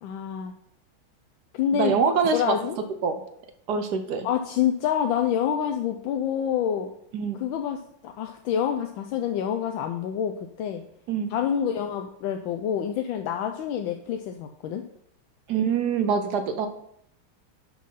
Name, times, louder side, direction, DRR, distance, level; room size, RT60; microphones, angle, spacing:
voice 1, 0.0-0.5 1.5-1.9 2.3-2.8 4.2-6.9 7.4-10.8 11.3-14.8, left 9 dB, 80° left, 5 dB, 1.4 m, -27 dB
voice 2, 1.7-2.6 3.0-3.2 3.7-4.3 7.1-7.4 11.1-11.3 15.5-16.7, right 6 dB, 65° right, 8 dB, 1.1 m, -24 dB
10.5 x 4.4 x 5.6 m, 0.72 s
omnidirectional pair, 2.2 m